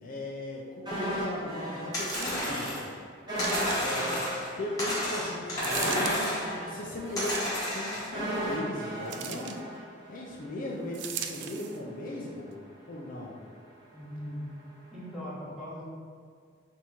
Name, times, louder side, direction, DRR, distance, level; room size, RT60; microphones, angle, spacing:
voice 1, 0.0-2.8 3.8-4.3 4.6-9.6 10.1-12.6 12.9-13.3, left 1 dB, 45° left, -3 dB, 0.4 m, -38 dB
sound 1, 0.9-2.5 2.8-2.9 3.3-10.4 10.7-10.8, right 1 dB, 20° right, 1.1 m, -35 dB
sound 2, 1.9-2.9 3.4-4.5 4.8-6.5 7.2-8.1, left 1 dB, 20° left, 1.3 m, -31 dB
sound 3, 1.9-2.6 3.4-4.1 5.6-6.2 7.1-7.8 9.1-9.6 10.9-11.8 12.5-12.6, right 9 dB, 60° right, 0.3 m, -39 dB
voice 2, 13.9-14.5 14.9-15.8, equal, ahead, -10 dB, 1.2 m, -39 dB
3.5 x 2.9 x 4.1 m, 2.1 s
head